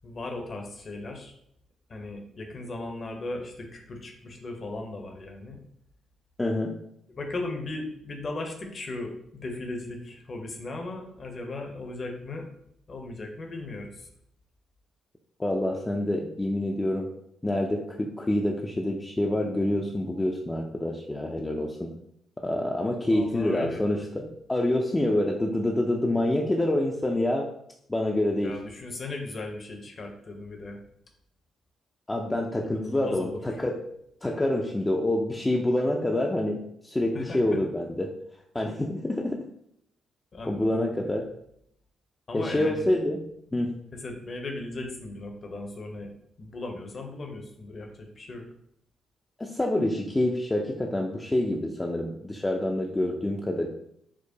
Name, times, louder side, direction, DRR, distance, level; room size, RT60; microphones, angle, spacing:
voice 1, 0.0-1.3 1.9-5.6 7.1-12.5 12.9-14.1 23.0-23.8 28.4-30.8 32.7-33.4 37.1-37.6 40.3-40.9 42.3-42.9 43.9-46.1 46.4-48.5, left 2 dB, 45° left, 3 dB, 0.8 m, -37 dB
voice 2, 6.4-6.8 15.4-17.1 17.4-21.9 22.4-27.5 27.9-28.6 32.1-33.9 34.2-38.1 38.5-39.4 40.5-41.2 42.3-43.2 43.5-43.8 49.4-53.7, left 1 dB, 20° left, 0 dB, 0.4 m, -27 dB
4.5 x 2.1 x 2.7 m, 0.72 s
supercardioid pair, 60°, 0 cm